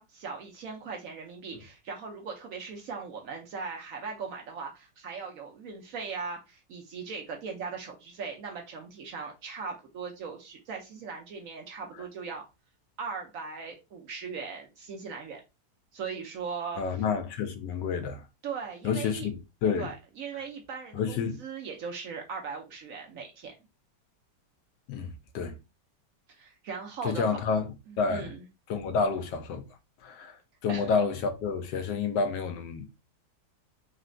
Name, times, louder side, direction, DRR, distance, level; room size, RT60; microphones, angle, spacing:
voice 1, 0.0-12.4 13.0-15.4 15.9-16.8 18.4-19.3 19.8-23.5 26.3-27.3 27.9-28.4 30.7-30.9, right 5 dB, 65° right, 0.9 m, -39 dB
voice 2, 16.8-18.3 18.8-19.9 20.9-21.4 24.9-25.5 27.0-28.3 28.7-29.6 30.0-32.9, left 5 dB, 90° left, 1.3 m, -29 dB
4.0 x 2.2 x 2.5 m
omnidirectional pair, 1.8 m